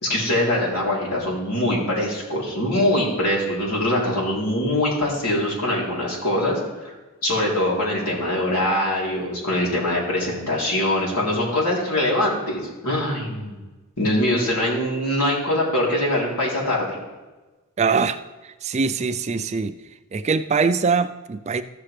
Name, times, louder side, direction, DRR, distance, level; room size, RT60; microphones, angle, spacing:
voice 1, 0.0-6.9 7.2-13.5 14.0-17.0, left 1 dB, 85° left, -4 dB, 3.3 m, -23 dB
voice 2, 17.8-18.2 18.4-19.7 20.1-21.6, right 5 dB, 30° right, 10 dB, 0.4 m, -22 dB
14.0 x 6.8 x 3.3 m, 1.2 s
head